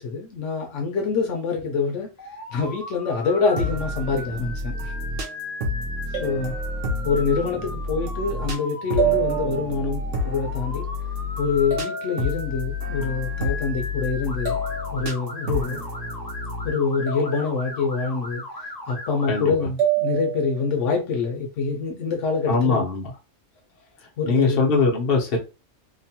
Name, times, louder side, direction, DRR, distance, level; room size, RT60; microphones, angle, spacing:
voice 1, 0.0-2.1 2.5-4.9 6.2-6.5 7.0-10.9 11.4-14.6 14.9-15.9 16.6-22.8 24.2-24.7, left 5 dB, 80° left, 1.0 m, -25 dB
Motor vehicle (road) / Siren, 2.2-19.5, left 1 dB, 20° left, 1.0 m, -37 dB
sound 1, 3.6-16.7, left 2 dB, 85° right, 1.0 m, -30 dB
sound 2, 4.7-5.2 6.1-7.4 9.0-10.0 11.7-12.8 14.4-15.5 17.1-18.0 19.8-20.8, right 7 dB, 35° right, 0.9 m, -29 dB
voice 2, 22.5-23.1 24.3-25.4, left 4 dB, 55° left, 1.0 m, -21 dB
3.0 x 2.1 x 2.8 m
omnidirectional pair, 1.2 m